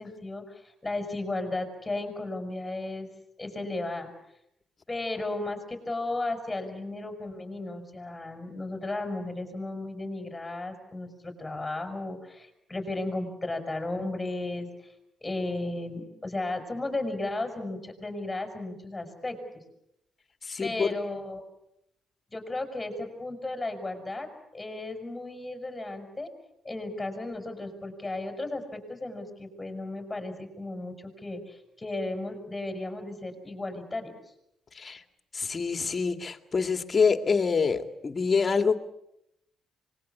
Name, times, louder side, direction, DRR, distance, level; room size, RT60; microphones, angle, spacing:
voice 1, 0.0-3.1 3.4-4.1 4.9-14.7 15.2-19.6 20.6-21.4 22.3-24.3 24.5-26.3 26.6-34.1, left 2 dB, 15° left, 5 dB, 6.7 m, -34 dB
voice 2, 20.4-20.9 34.8-35.0 35.3-38.8, left 5 dB, 35° left, 7 dB, 2.1 m, -26 dB
25.5 x 21.5 x 8.5 m, 0.81 s
cardioid pair, 90°, 0 cm